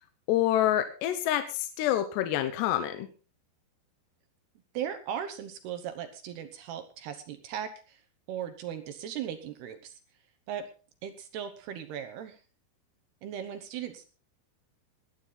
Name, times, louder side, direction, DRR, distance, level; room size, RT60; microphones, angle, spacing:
voice 1, 0.3-3.1, left 12 dB, 75° left, 9 dB, 2.9 m, -27 dB
voice 2, 4.7-8.0 8.3-10.0 10.5-10.7 11.0-12.4 13.2-14.1, right 9 dB, 70° right, 9 dB, 2.7 m, -38 dB
20.5 x 9.6 x 4.0 m, 0.34 s
omnidirectional pair, 5.6 m